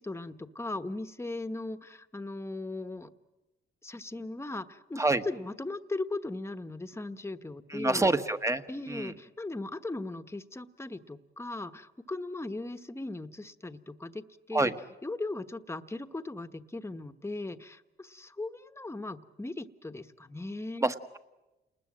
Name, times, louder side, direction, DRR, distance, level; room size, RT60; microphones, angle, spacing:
voice 1, 0.0-3.1 3.8-8.1 8.7-14.7 15.0-20.9, left 2 dB, 15° left, 10 dB, 1.2 m, -38 dB
voice 2, 7.7-8.6 8.9-9.1 14.5-14.7 20.8-21.2, right 2 dB, 15° right, 10 dB, 1.3 m, -27 dB
29.0 x 20.5 x 7.6 m, 1.0 s
cardioid pair, 90°, 20 cm